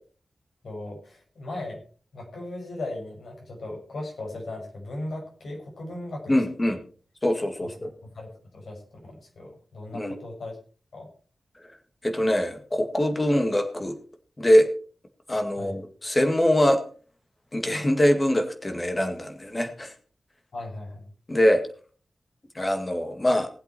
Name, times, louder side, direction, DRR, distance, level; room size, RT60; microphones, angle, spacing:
voice 1, 0.6-1.8 2.1-6.4 6.6-6.7 7.6-7.7 8.1-10.5 10.9-11.1 15.6-15.8 20.5-21.1, left 2 dB, 70° left, 0 dB, 6.3 m, -37 dB
voice 2, 6.3-6.8 7.2-7.9 9.9-10.2 12.0-14.0 14.4-14.7 15.3-16.8 17.5-19.9 21.3-21.6 22.6-23.5, equal, 20° left, 6 dB, 2.0 m, -23 dB
19.0 x 8.0 x 4.4 m, 0.41 s
wide cardioid pair, 150°, 0 cm